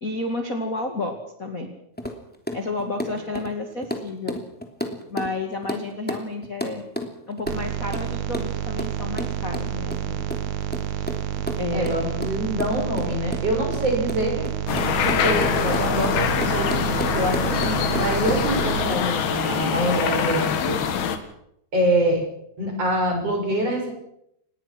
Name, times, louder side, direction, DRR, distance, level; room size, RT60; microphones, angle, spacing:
voice 1, 0.0-1.7 2.5-4.4 5.1-6.8 7.3-10.2 10.9-11.1 11.6-12.1, left 2 dB, 30° left, 4 dB, 1.9 m, -31 dB
sound 1, 2.0-5.3 5.6-5.8 6.1-8.5 8.8-19.0, equal, 5° left, 2.2 m, -31 dB
sound 2, 7.5-18.9, right 10 dB, 60° right, 2.2 m, -29 dB
voice 2, 11.7-14.5 15.0-20.8 21.7-22.2 22.6-23.9, right 1 dB, 35° right, 1 dB, 7.7 m, -25 dB
sound 3, 14.7-21.2, left 8 dB, 75° left, 3.7 m, -24 dB
26.0 x 20.5 x 6.2 m, 0.76 s
omnidirectional pair, 4.6 m